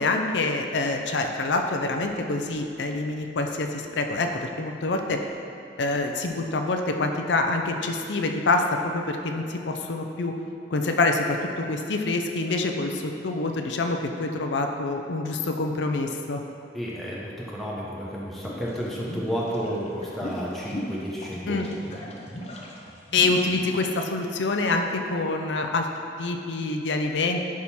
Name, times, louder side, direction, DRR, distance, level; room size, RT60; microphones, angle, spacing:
voice 1, 0.0-5.2 5.8-10.4 10.7-16.4 21.5-21.7 23.1-25.9 26.2-27.5, left 3 dB, 80° left, 4 dB, 0.6 m, -26 dB
voice 2, 16.7-22.0, equal, ahead, -6 dB, 0.8 m, -32 dB
sound 1, 18.4-23.8, equal, 40° left, 0.8 m, -38 dB
10.5 x 3.6 x 4.3 m, 2.5 s
head